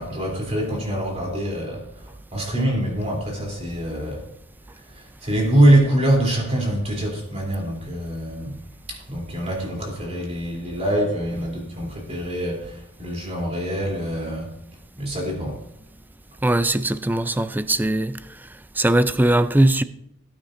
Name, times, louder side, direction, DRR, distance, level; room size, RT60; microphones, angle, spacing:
voice 1, 0.0-4.3 4.9-8.5 8.9-14.5 15.0-15.6, right 1 dB, 30° right, 3.4 m, -24 dB
voice 2, 16.4-18.2 18.8-19.8, right 1 dB, 10° right, 0.4 m, -20 dB
18.0 x 8.8 x 2.6 m
head